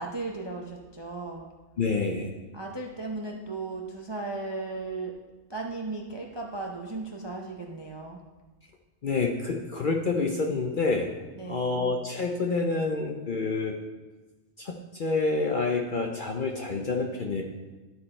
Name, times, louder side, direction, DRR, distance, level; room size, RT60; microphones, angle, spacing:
voice 1, 0.0-1.5 2.5-5.1 5.5-8.2 11.3-11.8, right 3 dB, 35° right, 0 dB, 0.4 m, -36 dB
voice 2, 1.8-2.3 9.0-11.1 11.5-13.8 14.6-17.4, left 3 dB, 55° left, 2 dB, 0.6 m, -28 dB
12.0 x 4.6 x 4.3 m, 1.2 s
omnidirectional pair, 1.4 m